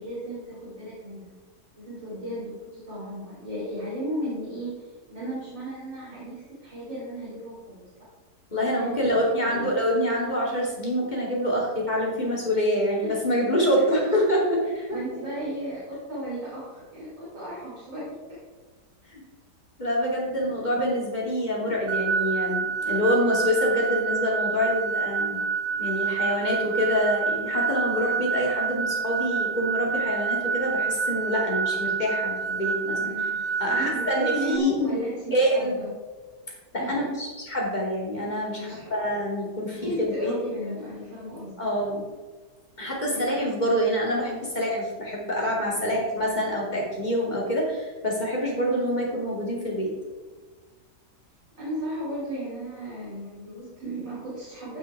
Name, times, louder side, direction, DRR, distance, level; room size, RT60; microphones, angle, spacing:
voice 1, 0.0-1.5 1.7-7.8 8.6-9.7 13.0-13.1 13.5-13.8 14.7-18.4 32.9-33.3 33.7-35.9 36.8-37.1 38.5-38.9 39.7-41.6 43.1-43.4 45.7-46.0 51.6-54.8, equal, 50° right, -10 dB, 4.5 m, -35 dB
voice 2, 8.5-14.6 19.1-19.2 19.8-25.4 25.8-33.3 33.6-35.0 35.3-35.9 36.7-40.3 41.6-42.0 42.8-49.9, equal, 25° left, -4 dB, 3.1 m, -26 dB
sound 1, 21.9-34.6, right 5 dB, 65° right, 0.9 m, -28 dB
15.5 x 5.5 x 4.8 m, 1.3 s
omnidirectional pair, 1.8 m